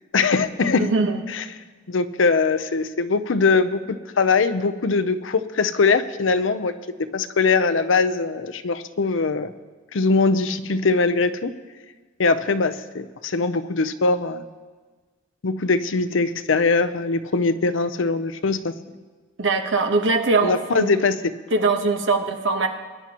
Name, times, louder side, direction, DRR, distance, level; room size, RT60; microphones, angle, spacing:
voice 1, 0.1-0.9 1.3-1.4 1.9-6.7 7.1-9.5 9.9-11.5 12.2-14.5 15.4-18.7 20.4-21.2, left 4 dB, 80° left, 11 dB, 0.6 m, -21 dB
voice 2, 0.8-1.2 19.4-20.9 21.5-22.7, right 3 dB, 70° right, 5 dB, 1.1 m, -21 dB
21.5 x 10.5 x 3.0 m, 1.4 s
head